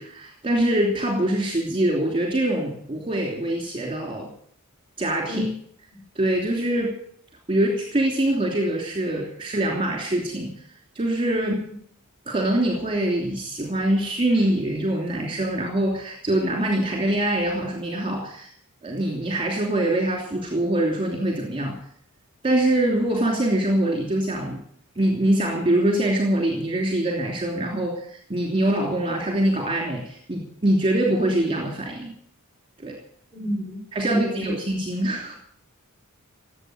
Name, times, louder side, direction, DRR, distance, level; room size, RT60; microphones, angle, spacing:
voice 1, 0.0-4.3 5.0-5.5 6.1-6.9 7.5-10.5 10.9-11.6 12.3-18.5 18.8-21.7 22.4-24.6 24.9-32.1 32.8-33.0 33.9-35.3, right 1 dB, 25° right, 1 dB, 3.0 m, -24 dB
voice 2, 33.3-34.5, equal, 10° left, -1 dB, 7.8 m, -29 dB
18.5 x 8.5 x 8.1 m, 0.62 s
head